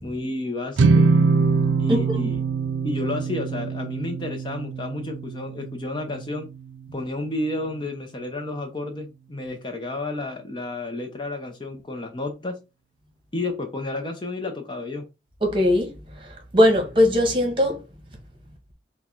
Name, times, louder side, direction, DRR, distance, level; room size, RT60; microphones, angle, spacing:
voice 1, 0.0-1.1 1.8-2.4 2.8-6.5 6.9-12.6 13.3-15.1, left 2 dB, 25° left, 0.6 m, -31 dB
sound 1, 0.8-7.2, right 4 dB, 90° right, 0.4 m, -23 dB
voice 2, 15.4-17.8, left 1 dB, 30° right, 1.2 m, -20 dB
4.6 x 2.2 x 4.3 m
head